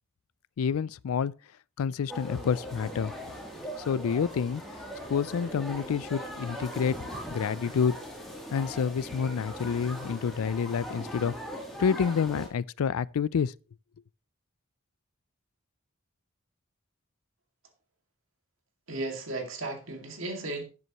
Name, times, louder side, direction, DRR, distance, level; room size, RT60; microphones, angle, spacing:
voice 1, 0.6-1.3 1.8-3.1 3.9-4.6 5.1-7.0 7.3-8.0 8.5-11.4 11.8-13.5, left 6 dB, 80° left, 0.4 m, -28 dB
sound 1, 2.1-12.5, equal, ahead, 2.9 m, -40 dB
voice 2, 18.9-20.6, right 2 dB, 60° right, 2.2 m, -35 dB
12.0 x 9.7 x 3.0 m
head